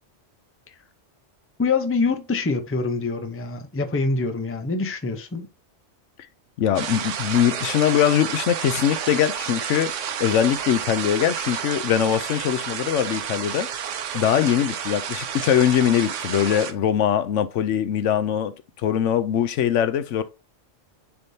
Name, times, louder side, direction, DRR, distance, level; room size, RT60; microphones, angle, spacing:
voice 1, 1.6-5.5, left 4 dB, 15° left, 0.5 m, -25 dB
voice 2, 6.6-9.9 10.2-13.7 14.1-18.5 18.8-20.2, left 9 dB, 85° left, 1.0 m, -22 dB
sound 1, 6.8-16.7, right 8 dB, 85° right, 1.1 m, -30 dB
9.6 x 3.6 x 2.7 m
omnidirectional pair, 1.2 m